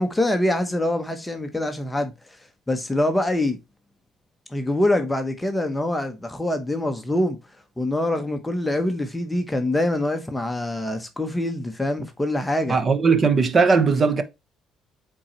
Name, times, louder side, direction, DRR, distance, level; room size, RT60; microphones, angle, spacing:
voice 1, 0.0-2.4 2.7-3.6 4.5-7.4 7.8-12.8, left 1 dB, 10° left, 0.9 m, -24 dB
voice 2, 12.7-14.2, right 5 dB, 35° right, 1.0 m, -18 dB
8.6 x 3.9 x 3.0 m
cardioid pair, 125°, 0 cm